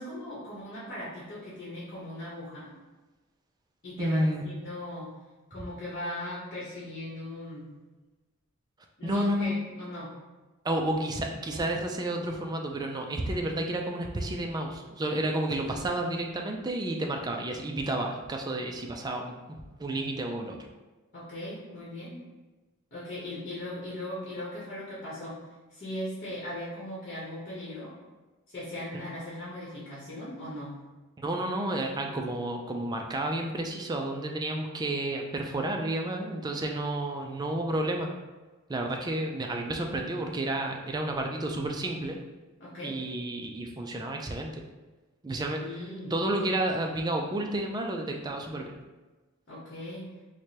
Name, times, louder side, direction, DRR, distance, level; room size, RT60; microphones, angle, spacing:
voice 1, 0.0-2.7 3.8-5.1 5.5-7.7 9.0-10.1 21.1-22.2 22.9-25.4 25.7-27.9 28.5-30.8 42.6-43.0 45.6-46.1 49.5-50.1, left 1 dB, 40° left, -8 dB, 1.0 m, -39 dB
voice 2, 4.0-4.4 9.0-9.5 10.6-20.6 31.2-38.1 38.7-42.2 42.8-44.5 45.2-45.6 46.1-48.7, right 1 dB, 20° right, 2 dB, 0.3 m, -31 dB
4.7 x 2.2 x 2.8 m, 1.2 s
head